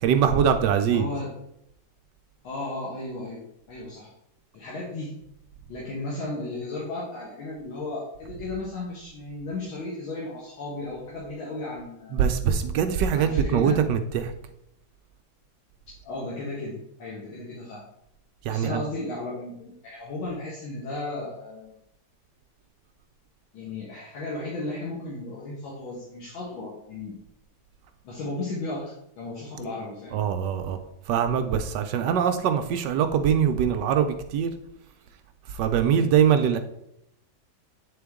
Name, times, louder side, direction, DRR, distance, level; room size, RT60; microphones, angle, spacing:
voice 1, 0.0-1.1 12.1-14.3 18.4-18.8 30.1-30.8 31.1-34.5 35.6-36.6, right 8 dB, 75° right, 7 dB, 1.1 m, -23 dB
voice 2, 0.8-1.3 2.4-4.1 4.5-5.2 5.7-12.3 13.2-13.8 16.0-17.8 18.5-21.7 23.5-27.2 28.0-30.2 35.8-36.1, left 2 dB, 85° left, -5 dB, 2.0 m, -35 dB
8.5 x 3.8 x 3.5 m, 0.79 s
omnidirectional pair, 2.1 m